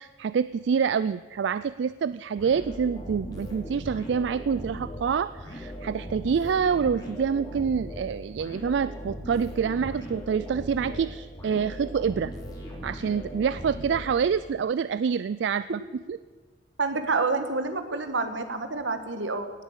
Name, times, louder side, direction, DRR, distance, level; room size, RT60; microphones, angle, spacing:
voice 1, 0.0-12.3 12.8-15.8 16.1-16.2, right 6 dB, 70° right, 16 dB, 0.3 m, -27 dB
sound 1, 2.4-14.6, equal, 20° left, 3.5 m, -39 dB
voice 2, 16.8-19.5, right 3 dB, 85° right, 9 dB, 1.5 m, -28 dB
18.0 x 8.4 x 7.3 m, 1.4 s
head